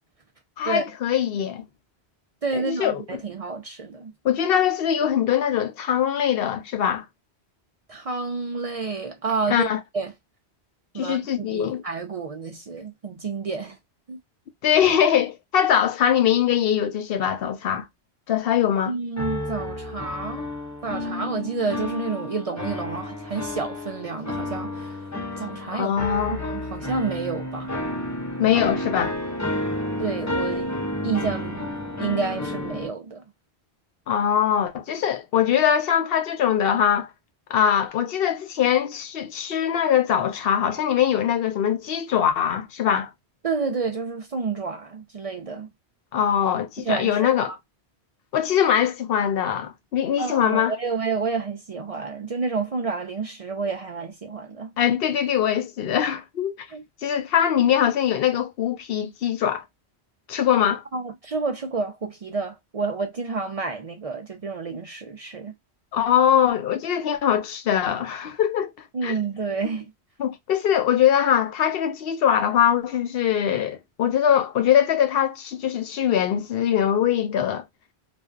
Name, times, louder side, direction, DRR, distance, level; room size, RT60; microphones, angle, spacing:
voice 1, 0.6-1.6 2.5-3.0 4.2-7.0 9.5-9.8 11.0-11.8 14.6-17.8 18.3-18.9 25.7-26.4 28.4-29.1 34.1-37.1 37.5-43.1 46.1-47.5 48.3-50.7 54.8-56.7 57.0-59.6 60.3-60.8 65.9-68.7 69.0-69.1 70.2-77.6, left 9 dB, 65° left, 0.8 m, -22 dB
voice 2, 2.4-4.1 7.9-9.7 9.9-10.1 10.9-13.8 14.1-14.2 18.9-20.5 20.8-25.1 25.4-25.9 26.3-27.8 30.0-30.8 31.0-33.3 43.4-45.7 46.8-47.6 50.2-54.7 56.7-56.8 60.9-65.6 68.9-69.9, right 4 dB, 50° right, 0.4 m, -29 dB
sound 1, 19.2-32.9, left 1 dB, 25° left, 0.4 m, -31 dB
2.5 x 2.3 x 2.3 m
omnidirectional pair, 1.1 m